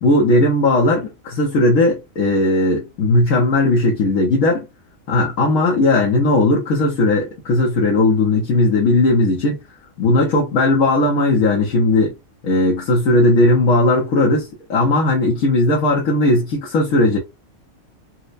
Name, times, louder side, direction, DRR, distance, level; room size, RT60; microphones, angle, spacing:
voice 1, 0.0-4.7 5.1-9.6 10.0-12.1 12.4-17.2, left 2 dB, 80° left, 1.4 m, -17 dB
4.3 x 2.2 x 2.5 m
omnidirectional pair, 1.4 m